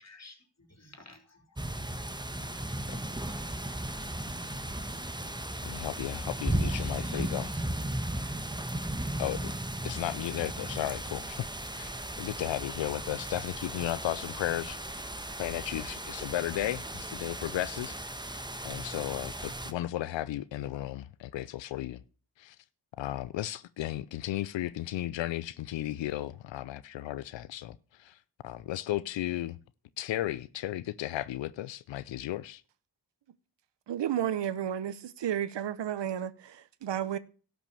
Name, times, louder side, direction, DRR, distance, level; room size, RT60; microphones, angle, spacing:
voice 1, 0.0-2.9 3.3-5.9 6.6-7.7, left 2 dB, 35° left, 3.6 m, -54 dB
sound 1, 1.6-19.7, right 1 dB, 10° right, 1.2 m, -36 dB
voice 2, 5.6-7.5 9.2-9.5 9.8-11.5 11.8-11.9 12.2-15.0 15.4-22.0 22.4-22.6 23.0-28.2 28.4-29.6 30.0-32.6, left 14 dB, 85° left, 0.5 m, -35 dB
voice 3, 33.9-37.2, right 10 dB, 75° right, 0.8 m, -32 dB
12.0 x 6.0 x 6.8 m
cardioid pair, 45°, 43 cm